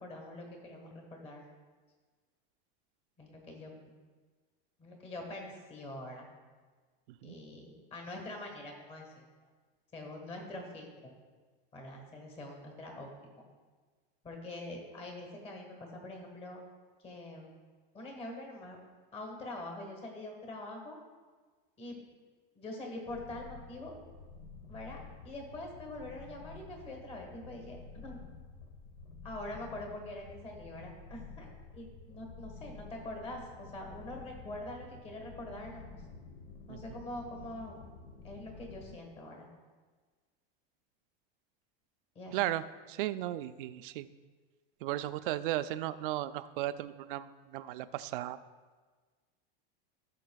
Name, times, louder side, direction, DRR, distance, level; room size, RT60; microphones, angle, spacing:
voice 1, 0.0-1.5 3.2-4.0 4.8-6.3 7.2-9.2 9.9-10.9 11.7-13.1 13.4-13.5 14.2-16.6 17.0-17.5 17.9-18.8 19.1-21.0 21.8-22.0 22.5-23.9 24.7-25.0 25.2-28.2 29.2-31.5 31.7-35.9 36.7-37.8 38.2-39.5 42.1-42.4, left 1 dB, 20° left, 1 dB, 1.5 m, -44 dB
sound 1, 23.1-39.0, left 4 dB, 55° left, 0.9 m, -50 dB
voice 2, 42.3-44.1 44.8-48.4, right 14 dB, 65° right, 12 dB, 0.5 m, -35 dB
15.5 x 6.6 x 2.3 m, 1.4 s
supercardioid pair, 165°, 29 cm